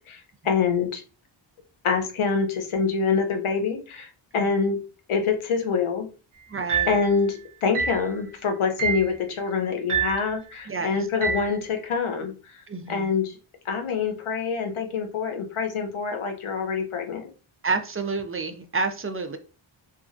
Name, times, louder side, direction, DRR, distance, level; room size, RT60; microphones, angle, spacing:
voice 1, 0.1-1.0 1.8-4.8 5.1-6.1 6.9-12.6 12.9-13.4 13.7-17.3, left 5 dB, 80° left, 5 dB, 0.8 m, -26 dB
voice 2, 6.5-7.0 10.7-11.0 12.7-13.1 17.6-19.4, right 4 dB, 30° right, 7 dB, 0.3 m, -29 dB
sound 1, 6.7-7.1 7.7-8.1 8.8-9.1 9.9-10.3 11.2-11.5, right 6 dB, 85° right, 0.7 m, -26 dB
2.9 x 2.3 x 2.5 m, 0.34 s
wide cardioid pair, 100°, 49 cm